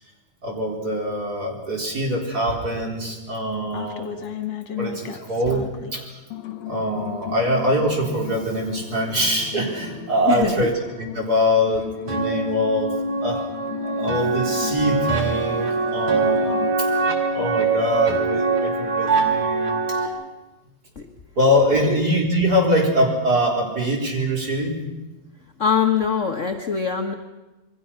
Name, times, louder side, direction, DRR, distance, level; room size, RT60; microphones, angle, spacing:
voice 1, 0.4-4.2 4.7-5.6 5.9-6.2 6.6-12.9 13.2-13.5 13.8-16.6 17.0-17.1 17.3-20.1 21.4-24.8, equal, 30° right, 0 dB, 4.6 m, -23 dB
sound 1, 3.7-6.0 6.3-16.8, left 9 dB, 65° left, 2.7 m, -35 dB
voice 2, 10.3-10.7 21.8-22.0 25.6-27.1, left 6 dB, 45° left, 4 dB, 1.0 m, -22 dB
sound 2, 12.1-20.1, right 4 dB, 65° right, 3.8 m, -23 dB
27.5 x 22.0 x 5.9 m, 1.1 s
omnidirectional pair, 3.3 m